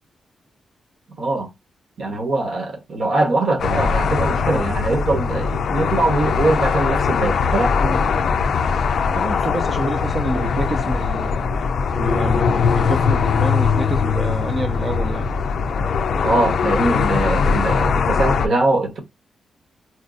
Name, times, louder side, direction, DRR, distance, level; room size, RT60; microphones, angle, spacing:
voice 1, 1.2-1.5 2.0-7.7 16.2-19.0, right 2 dB, 50° right, 1.1 m, -22 dB
sound 1, 3.6-18.5, left 5 dB, 60° left, 0.3 m, -20 dB
voice 2, 9.0-11.4 11.9-15.3, right 2 dB, 30° right, 0.6 m, -27 dB
4.3 x 2.5 x 2.4 m
wide cardioid pair, 175°, 0 cm